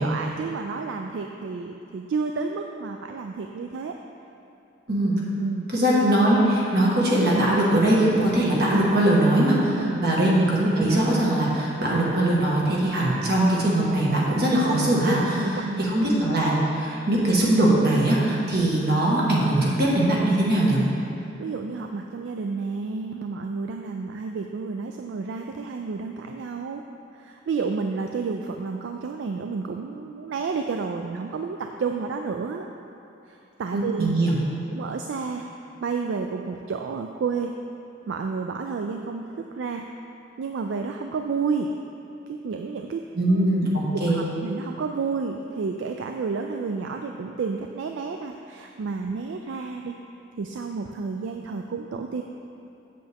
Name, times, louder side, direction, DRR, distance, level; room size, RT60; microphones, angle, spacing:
voice 1, 0.0-3.9 5.4-5.7 9.8-10.3 15.3-15.9 21.2-26.8 27.1-32.7 33.3-34.1 34.7-35.5 35.8-37.5 38.1-39.3 39.6-39.9 40.4-41.7 42.3-43.0 43.3-43.5 43.9-49.9 50.4-52.2, right 4 dB, 75° right, 4 dB, 0.3 m, -30 dB
voice 2, 5.7-20.8 33.7-34.4 43.1-44.2, right 1 dB, 55° right, -5 dB, 1.5 m, -21 dB
7.6 x 7.0 x 3.5 m, 2.9 s
head